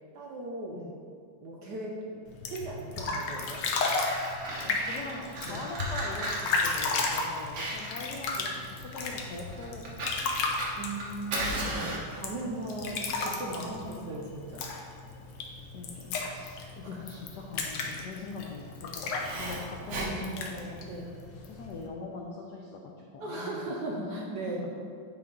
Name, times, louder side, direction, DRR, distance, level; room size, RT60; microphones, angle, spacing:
voice 1, 0.1-0.8 1.4-3.7 5.5-5.6 10.8-14.7 16.8-17.0 19.9-20.4 20.8-21.1 23.2-24.6, right 2 dB, 65° right, -2 dB, 1.1 m, -38 dB
sound 1, 2.3-21.9, left 3 dB, 65° left, 1.2 m, -34 dB
Fire, 3.3-21.1, right 1 dB, 50° right, 1.3 m, -38 dB
voice 2, 4.6-10.5 15.7-21.1 21.4-23.6 23.9-24.2, left 3 dB, 90° left, -1 dB, 0.9 m, -42 dB
9.3 x 3.5 x 3.8 m, 2.2 s
omnidirectional pair, 2.4 m